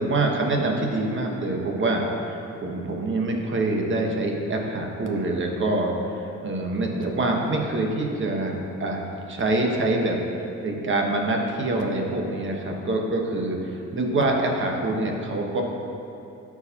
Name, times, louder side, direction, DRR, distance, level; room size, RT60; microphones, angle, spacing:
voice 1, 0.0-10.2 10.6-15.6, right 2 dB, 40° right, 1 dB, 1.2 m, -25 dB
13.0 x 4.8 x 2.9 m, 2.7 s
cardioid pair, 90°, 30 cm